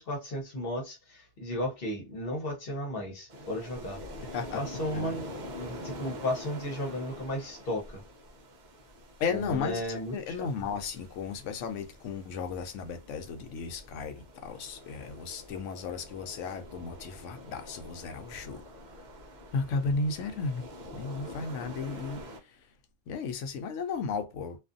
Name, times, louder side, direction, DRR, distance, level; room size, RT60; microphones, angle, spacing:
voice 1, 0.0-4.0 4.5-8.0 9.3-10.5, left 1 dB, 50° left, 1.0 m, -34 dB
sound 1, 3.3-22.4, left 1 dB, 50° right, 0.6 m, -46 dB
voice 2, 9.2-18.6 19.5-20.6 20.9-22.6 23.1-24.6, left 4 dB, 80° left, 0.9 m, -34 dB
2.5 x 2.4 x 2.5 m
omnidirectional pair, 1.3 m